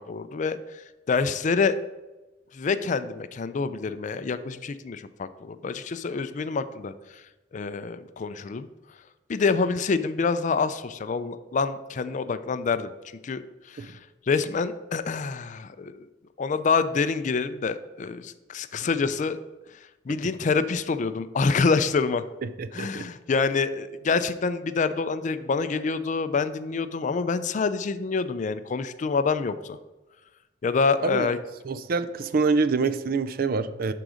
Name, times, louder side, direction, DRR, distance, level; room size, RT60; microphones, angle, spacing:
voice 1, 0.0-1.8 2.5-7.2 7.5-8.7 9.3-12.9 13.2-14.0 14.3-16.1 16.4-19.4 19.7-22.3 22.7-29.8 30.6-31.4, left 4 dB, 45° left, 13 dB, 0.4 m, -27 dB
voice 2, 22.6-23.1 31.0-31.3 31.7-33.9, right 4 dB, 55° right, 12 dB, 0.5 m, -26 dB
11.0 x 3.9 x 5.0 m, 1.1 s
head